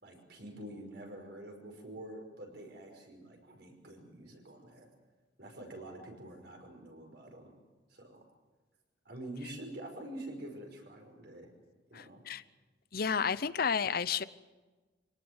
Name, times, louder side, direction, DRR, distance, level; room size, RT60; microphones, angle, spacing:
voice 1, 0.0-4.9 5.4-7.5 7.9-8.2 9.1-11.5 11.9-12.2, right 1 dB, 60° right, 3 dB, 5.6 m, -47 dB
voice 2, 11.9-12.4 12.9-14.2, left 6 dB, 55° left, 16 dB, 0.7 m, -31 dB
25.0 x 18.5 x 8.1 m, 1.2 s
head